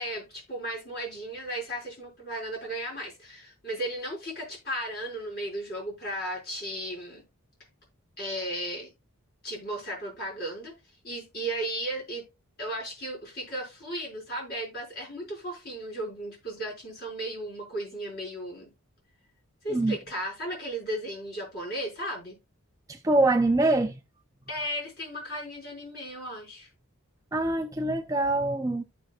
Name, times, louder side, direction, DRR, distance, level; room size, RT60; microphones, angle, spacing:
voice 1, 0.0-7.2 8.2-8.9 9.4-10.7 11.0-12.2 12.6-18.7 19.6-22.4 24.5-26.7, right 1 dB, 45° left, 5.6 m, -35 dB
voice 2, 22.9-24.0 27.3-28.8, right 2 dB, 15° right, 0.4 m, -24 dB
14.5 x 5.6 x 2.4 m
head